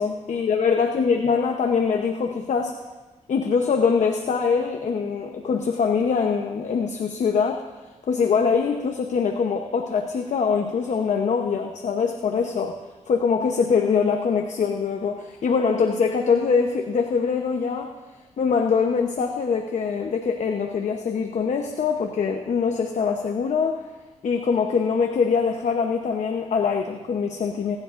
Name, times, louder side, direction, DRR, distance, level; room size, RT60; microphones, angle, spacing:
voice 1, 0.0-2.8 3.3-7.6 8.1-12.8 13.1-17.9 18.4-23.8 24.2-27.8, left 5 dB, 65° left, 3 dB, 0.8 m, -23 dB
26.5 x 10.5 x 2.5 m, 1.2 s
cardioid pair, 95°, 13 cm